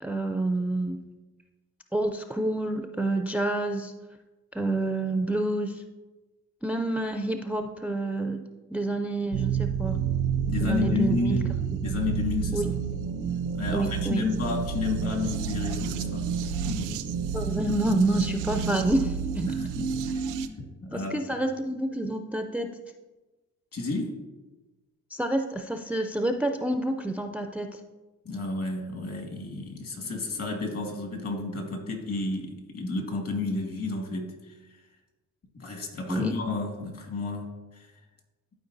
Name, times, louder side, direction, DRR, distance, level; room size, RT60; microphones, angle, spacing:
voice 1, 0.0-1.0 1.9-3.9 4.5-5.8 6.6-8.4 8.7-10.0 10.6-11.4 11.7-12.0 12.5-12.7 13.7-14.2 17.3-19.5 20.9-22.7 25.1-27.8 36.1-36.3, right 2 dB, 5° right, 6 dB, 0.4 m, -28 dB
sound 1, 9.3-20.5, right 7 dB, 90° right, 0.6 m, -30 dB
voice 2, 10.4-11.5 11.8-12.6 13.5-17.0 19.5-20.2 20.8-21.2 23.7-24.2 28.2-34.6 35.5-37.9, left 3 dB, 50° left, 3 dB, 1.7 m, -31 dB
11.5 x 4.5 x 2.6 m, 1.2 s
cardioid pair, 90°, 30 cm